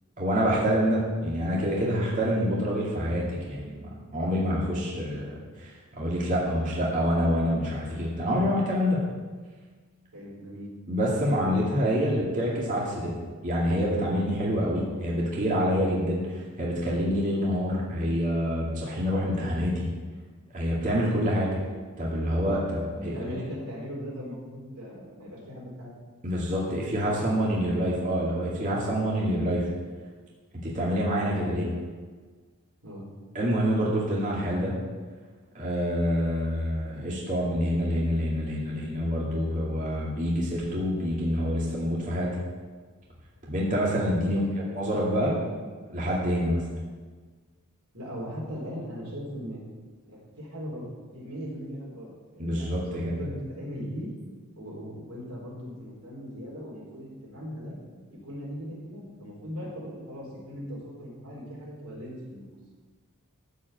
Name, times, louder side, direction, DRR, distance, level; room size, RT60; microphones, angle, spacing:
voice 1, 0.2-9.0 10.9-13.1 13.4-19.9 20.5-21.5 22.0-23.1 26.2-29.7 30.6-31.7 33.3-34.7 35.5-42.3 43.5-44.4 44.7-45.3 45.9-46.6 52.4-53.1, equal, 35° right, -6 dB, 2.4 m, -27 dB
voice 2, 10.1-10.7 22.8-25.9 27.0-27.2 27.8-28.0 32.8-33.1 44.2-44.5 47.9-49.6 50.1-50.9 51.1-54.1 54.6-57.8 58.1-62.5, equal, 70° right, -5 dB, 4.1 m, -39 dB
14.5 x 5.0 x 8.1 m, 1.4 s
head